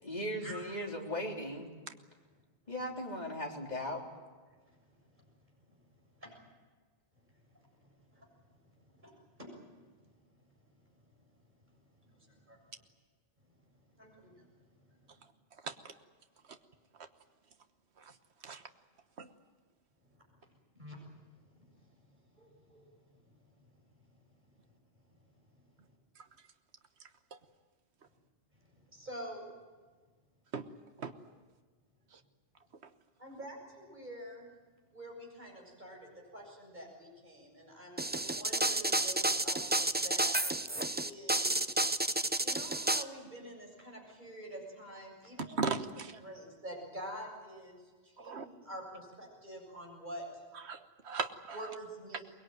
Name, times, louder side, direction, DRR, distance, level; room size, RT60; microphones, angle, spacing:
voice 1, 0.0-1.7 2.7-4.0, equal, 40° left, -1 dB, 3.9 m, -38 dB
voice 2, 4.6-5.3 5.7-6.5 7.1-10.2 10.5-12.6 13.4-15.3 20.0-26.0 28.5-29.5 33.2-34.5 34.9-40.4 41.0-41.6 42.4-45.6 45.9-50.4 51.5-52.2, equal, 45° right, 0 dB, 7.6 m, -49 dB
sound 1, 38.0-43.0, right 2 dB, 10° right, 0.5 m, -30 dB
voice 3, 45.4-46.2 48.2-48.5 50.6-51.6, right 4 dB, 75° right, 7 dB, 1.5 m, -37 dB
23.5 x 21.5 x 9.2 m, 1.4 s
omnidirectional pair, 1.1 m